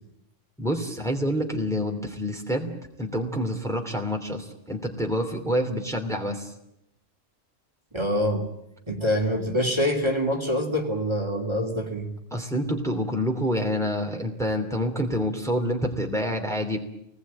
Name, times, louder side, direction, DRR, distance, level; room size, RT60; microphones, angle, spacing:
voice 1, 0.6-6.5 12.3-16.8, equal, ahead, 2 dB, 2.9 m, -27 dB
voice 2, 7.9-8.5 8.9-12.1, equal, 20° right, 3 dB, 3.0 m, -25 dB
27.5 x 20.0 x 8.9 m, 0.83 s
omnidirectional pair, 1.3 m